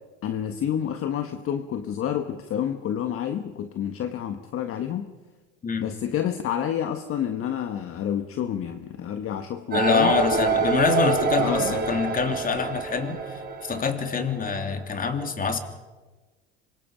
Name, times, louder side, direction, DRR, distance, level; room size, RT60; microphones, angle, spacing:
voice 1, 0.2-5.1 5.8-10.2 11.4-11.8, left 9 dB, 40° left, 7 dB, 1.6 m, -29 dB
voice 2, 9.7-15.6, left 5 dB, 25° left, 6 dB, 3.1 m, -25 dB
sound 1, 9.7-14.8, right 4 dB, 30° right, 4.3 m, -26 dB
26.0 x 23.5 x 5.3 m, 1.3 s
hypercardioid pair, 90°, 32 cm